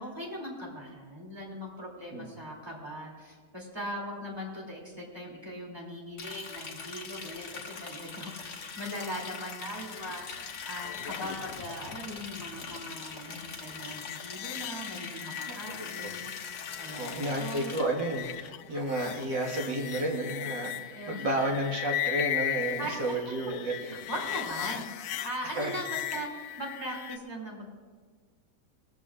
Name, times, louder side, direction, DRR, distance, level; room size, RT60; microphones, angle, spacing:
voice 1, 0.0-17.7 20.9-21.3 22.8-23.2 23.8-27.7, equal, 15° right, -2 dB, 2.9 m, -40 dB
Liquid, 6.2-17.8, left 5 dB, 65° left, 1.8 m, -43 dB
sound 1, 8.4-27.2, left 12 dB, 85° left, 1.2 m, -38 dB
voice 2, 17.0-23.7 25.6-25.7, right 1 dB, 85° right, -1 dB, 2.4 m, -31 dB
19.5 x 14.0 x 2.5 m, 1.5 s
omnidirectional pair, 1.9 m